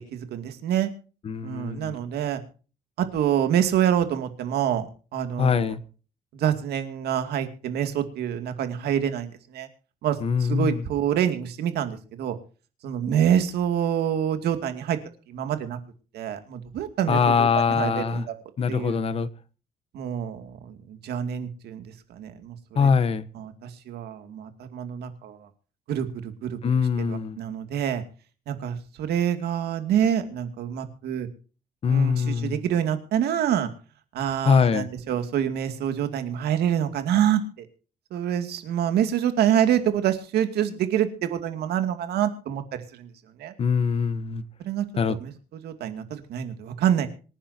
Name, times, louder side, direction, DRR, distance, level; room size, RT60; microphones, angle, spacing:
voice 1, 0.1-0.9 1.4-2.4 3.0-4.9 5.1-5.7 6.3-9.7 10.0-12.4 12.8-15.0 15.3-15.8 16.1-18.3 18.7-19.0 19.9-21.8 22.1-22.9 23.3-25.4 25.9-26.6 27.1-28.0 28.5-31.3 31.9-33.7 34.1-37.7 38.1-42.6 43.0-43.1 43.4-43.5 44.7-45.3 45.6-47.1, right 9 dB, 80° right, 8 dB, 2.4 m, -26 dB
voice 2, 1.2-2.0 5.4-5.8 10.2-10.8 17.1-18.3 18.6-19.3 22.8-23.3 26.6-27.4 31.8-32.6 34.4-34.9 43.6-44.4 45.0-45.2, left 6 dB, 35° left, 14 dB, 1.1 m, -23 dB
26.0 x 10.5 x 2.8 m, 0.37 s
cardioid pair, 155°, 16 cm